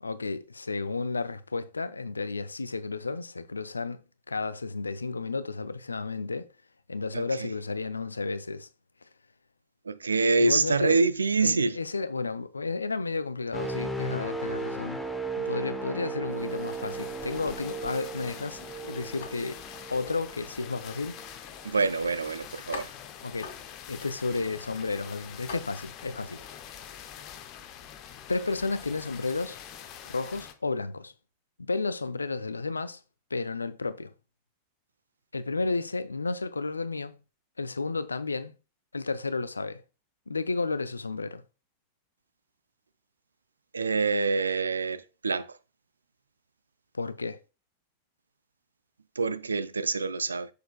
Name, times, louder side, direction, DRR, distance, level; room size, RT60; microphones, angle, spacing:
voice 1, 0.0-4.0 4.3-6.5 6.9-8.7 10.4-11.0 11.4-15.0 15.4-19.6 19.9-21.2 23.2-23.5 23.9-26.4 28.3-29.6 30.1-31.1 31.6-33.0 33.3-34.1 35.3-37.2 37.6-38.5 38.9-39.8 40.3-41.4 46.9-47.4, left 3 dB, 80° left, 0.4 m, -32 dB
voice 2, 9.9-11.7 21.6-22.9 43.7-45.5 49.2-50.5, right 4 dB, 75° right, 0.4 m, -26 dB
sound 1, 13.5-21.3 21.8-22.0, right 3 dB, ahead, 0.9 m, -36 dB
sound 2, 16.2-30.5, left 9 dB, 40° left, 0.8 m, -45 dB
sound 3, 19.2-27.4, left 5 dB, 60° left, 1.8 m, -48 dB
6.6 x 6.4 x 2.3 m
figure-of-eight pair, 90°, 0 cm